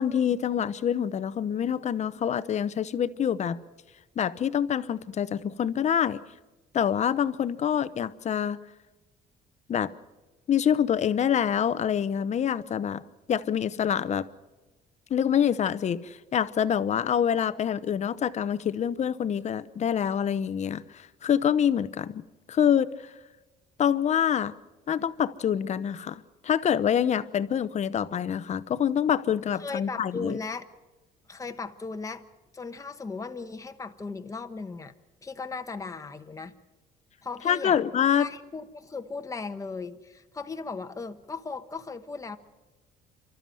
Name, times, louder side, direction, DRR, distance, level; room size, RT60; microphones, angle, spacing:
voice 1, 0.0-3.6 4.2-6.2 6.7-8.6 9.7-9.9 10.5-13.0 13.3-14.3 15.1-22.2 22.5-22.9 23.8-24.5 24.9-30.4 37.4-38.3, left 8 dB, 45° left, 0.9 m, -26 dB
voice 2, 29.6-30.7 31.3-32.2 32.5-34.9 35.2-36.5 37.2-37.8 38.2-42.4, left 4 dB, 20° left, 1.2 m, -37 dB
29.0 x 13.0 x 7.7 m
cardioid pair, 110°, 17 cm